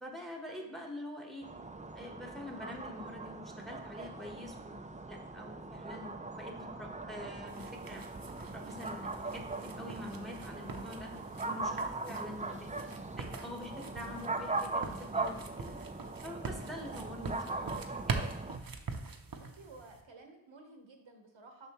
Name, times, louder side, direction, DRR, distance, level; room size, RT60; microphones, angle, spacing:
voice 1, 0.0-1.5 1.9-4.8 5.1-8.0 8.5-11.1 11.4-12.7 13.2-15.8 16.2-18.2, left 1 dB, ahead, 1 dB, 1.1 m, -46 dB
voice 2, 0.5-0.9 19.3-21.7, right 3 dB, 85° right, 4 dB, 1.0 m, -56 dB
sound 1, 1.4-18.6, right 3 dB, 20° right, 0.4 m, -40 dB
sound 2, 7.5-20.0, right 4 dB, 50° right, 0.7 m, -44 dB
6.6 x 5.7 x 2.9 m, 0.93 s
wide cardioid pair, 60°, 45 cm